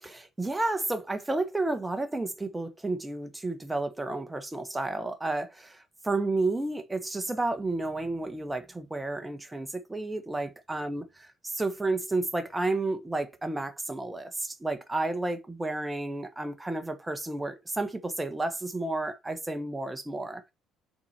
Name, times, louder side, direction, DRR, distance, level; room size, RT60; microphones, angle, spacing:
voice 1, 0.0-11.0 11.4-20.5, right 2 dB, 15° right, 1.3 m, -31 dB
6.9 x 4.3 x 4.4 m
hypercardioid pair, 50°, 0 cm